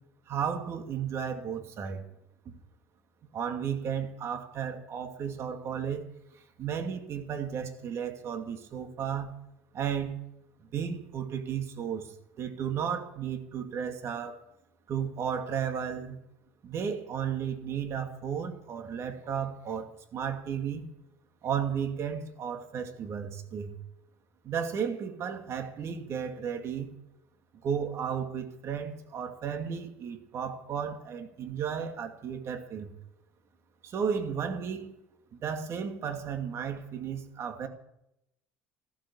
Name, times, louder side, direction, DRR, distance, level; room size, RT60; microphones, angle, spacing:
voice 1, 0.3-2.1 2.5-2.6 3.3-6.0 6.6-9.3 9.7-10.2 10.6-14.4 14.9-16.2 16.6-20.9 21.4-23.8 24.4-26.9 27.6-32.9 33.8-34.9 35.3-37.7, right 7 dB, 50° right, 6 dB, 2.5 m, -34 dB
14.5 x 13.0 x 7.1 m, 0.83 s
supercardioid pair, 80°, 6 cm